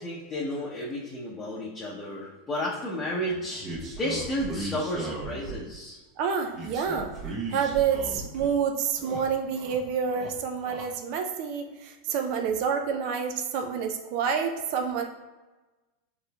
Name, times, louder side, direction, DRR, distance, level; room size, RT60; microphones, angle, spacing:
voice 1, 0.0-6.0, equal, 20° left, -6 dB, 0.7 m, -32 dB
sound 1, 3.6-5.8 6.5-8.5 8.8-9.8 10.1-10.9, right 2 dB, 40° right, 1.0 m, -37 dB
voice 2, 6.2-7.1 7.5-15.0, right 6 dB, 60° right, 4 dB, 0.4 m, -28 dB
4.0 x 3.1 x 2.3 m, 1.2 s
hypercardioid pair, 105°, 0 cm